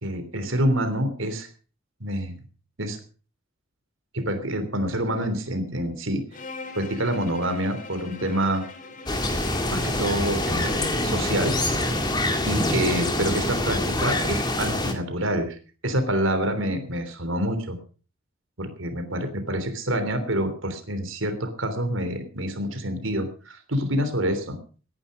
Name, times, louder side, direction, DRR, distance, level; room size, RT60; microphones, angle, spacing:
voice 1, 0.0-1.5 2.0-2.3 2.8-3.0 4.1-6.2 6.7-8.6 9.7-11.6 12.4-15.6 15.8-17.8 18.6-24.6, right 1 dB, 70° right, 9 dB, 3.3 m, -27 dB
Bowed string instrument, 6.3-12.3, left 3 dB, 40° left, 2.6 m, -42 dB
sound 1, 9.1-14.9, left 1 dB, 20° left, 2.1 m, -25 dB
17.5 x 10.5 x 5.4 m, 0.38 s
head